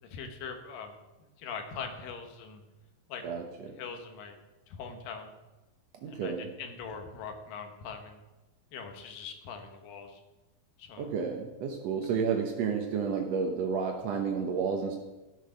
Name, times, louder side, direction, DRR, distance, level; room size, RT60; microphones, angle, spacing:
voice 1, 0.0-0.9 1.4-2.6 3.1-3.2 3.8-4.4 4.7-5.3 6.0-8.2 8.7-10.2 10.8-11.1, left 6 dB, 70° left, 5 dB, 2.9 m, -42 dB
voice 2, 3.2-3.8 6.0-6.5 11.0-15.0, right 6 dB, 85° right, 3 dB, 1.4 m, -31 dB
16.0 x 6.6 x 5.2 m, 1.1 s
omnidirectional pair, 4.3 m